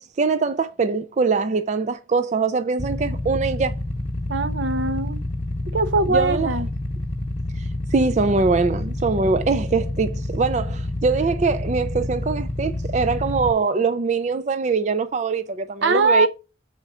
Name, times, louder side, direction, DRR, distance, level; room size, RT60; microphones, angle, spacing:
voice 1, 0.0-3.8 6.1-6.6 7.5-16.3, right 4 dB, 35° right, 0.3 m, -23 dB
Motorcycle / Idling, 2.8-13.5, left 1 dB, 30° left, 0.9 m, -28 dB
voice 2, 4.3-5.2 5.7-6.7 15.8-16.3, right 3 dB, 65° right, 0.7 m, -21 dB
7.1 x 4.3 x 4.9 m
head